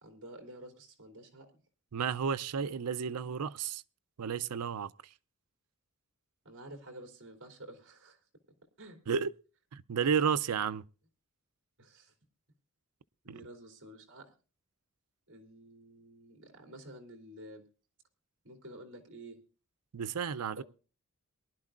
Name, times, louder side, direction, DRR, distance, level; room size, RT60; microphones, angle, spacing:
voice 1, 0.0-1.5 6.4-8.2 8.8-9.0 11.8-12.1 13.2-14.3 15.3-17.6 18.4-19.4 20.6-20.7, right 1 dB, 60° right, 3.1 m, -50 dB
voice 2, 1.9-3.8 4.2-4.9 9.1-9.3 9.7-10.8 13.3-13.4 19.9-20.6, right 7 dB, 85° right, 0.5 m, -32 dB
22.5 x 11.5 x 2.4 m
head